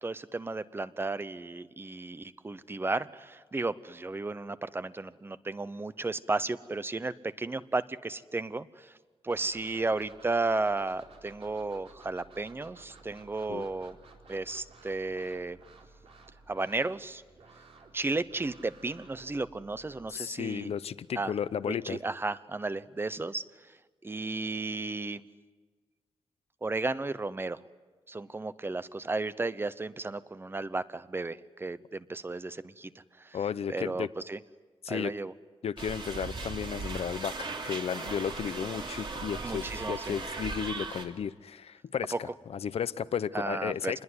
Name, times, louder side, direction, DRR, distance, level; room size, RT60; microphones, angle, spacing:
voice 1, 0.0-8.9 9.2-14.0 14.3-15.6 16.5-17.2 17.9-20.7 21.2-21.3 21.6-23.4 24.0-25.2 26.6-27.6 28.1-32.9 33.2-33.4 33.7-34.4 34.9-35.3 39.4-40.1 42.1-42.2 43.3-43.9, right 3 dB, 20° right, 15 dB, 0.8 m, -34 dB
sound 1, 9.3-20.1, right 3 dB, 70° right, 4.5 m, -55 dB
voice 2, 20.1-22.0 33.3-34.1 34.8-35.1 35.6-44.0, left 8 dB, 75° left, 15 dB, 0.8 m, -34 dB
sound 2, 35.8-41.1, right 3 dB, 50° right, 3.0 m, -38 dB
28.0 x 21.0 x 9.7 m, 1.4 s
wide cardioid pair, 155°, 10 cm